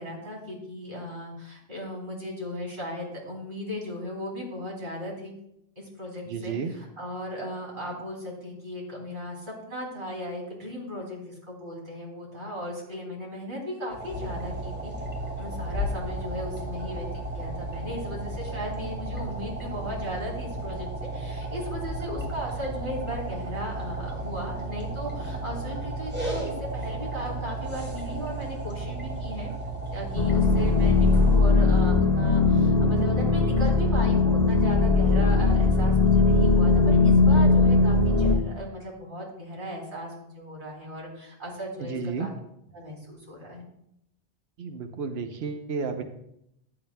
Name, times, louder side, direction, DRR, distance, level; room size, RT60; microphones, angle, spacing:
voice 1, 0.0-5.3 5.8-14.9 15.4-20.9 21.1-29.5 29.9-42.3 42.7-43.6, equal, 55° right, -2 dB, 3.0 m, -37 dB
voice 2, 6.3-6.7 41.8-42.3 44.6-46.0, right 5 dB, 85° right, 6 dB, 1.0 m, -32 dB
sound 1, 13.9-31.4, right 2 dB, 10° right, 2.0 m, -34 dB
sound 2, 30.2-38.4, left 3 dB, 40° left, 1.0 m, -20 dB
14.5 x 9.0 x 2.2 m, 0.77 s
omnidirectional pair, 1.0 m